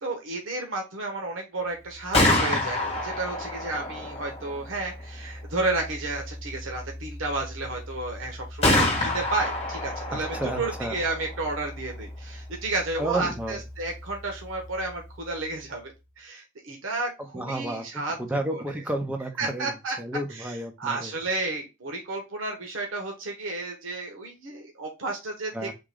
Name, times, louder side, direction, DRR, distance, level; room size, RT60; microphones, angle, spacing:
voice 1, 0.0-18.6 19.4-19.9 20.3-25.7, right 2 dB, 85° right, 2 dB, 1.1 m, -32 dB
Gunshot gunfire, 1.9-15.7, left 1 dB, 30° left, 1.4 m, -30 dB
voice 2, 10.1-11.0 13.0-13.6 17.3-19.7 20.0-21.1 25.5-25.7, right 1 dB, 5° right, 4 dB, 0.7 m, -31 dB
3.7 x 2.9 x 4.8 m, 0.25 s
head